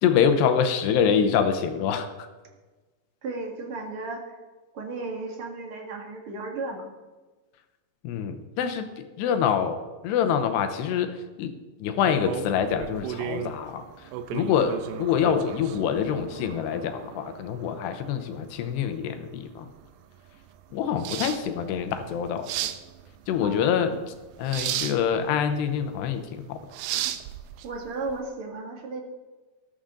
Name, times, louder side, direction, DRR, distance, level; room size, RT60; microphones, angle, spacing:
voice 1, 0.0-2.1 8.0-11.5 11.8-13.9 14.3-19.7 20.7-22.5 23.3-26.6, left 7 dB, 80° left, 8 dB, 2.9 m, -25 dB
voice 2, 3.2-4.4 4.7-6.8 23.4-24.0 27.6-29.0, right 3 dB, 45° right, 2 dB, 1.8 m, -35 dB
sound 1, 12.0-28.2, right 11 dB, 85° right, 2.8 m, -36 dB
14.0 x 13.0 x 3.8 m, 1.2 s
omnidirectional pair, 5.0 m